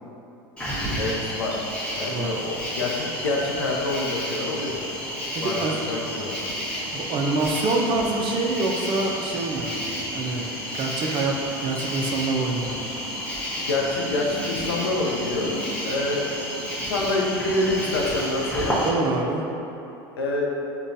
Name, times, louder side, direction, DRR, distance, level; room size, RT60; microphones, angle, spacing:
Cricket, 0.6-18.9, equal, 10° left, 1.0 m, -31 dB
voice 1, 0.9-1.6 1.9-4.8 5.4-6.4 13.6-16.6 16.9-18.8 20.2-20.5, left 2 dB, 85° left, -2 dB, 0.5 m, -27 dB
voice 2, 2.1-2.4 5.3-5.8 6.9-9.7 10.1-10.5 10.7-12.8 18.8-19.4, right 3 dB, 40° right, 1 dB, 0.5 m, -26 dB
5.0 x 2.2 x 2.6 m, 3.0 s
hypercardioid pair, 85°, 12 cm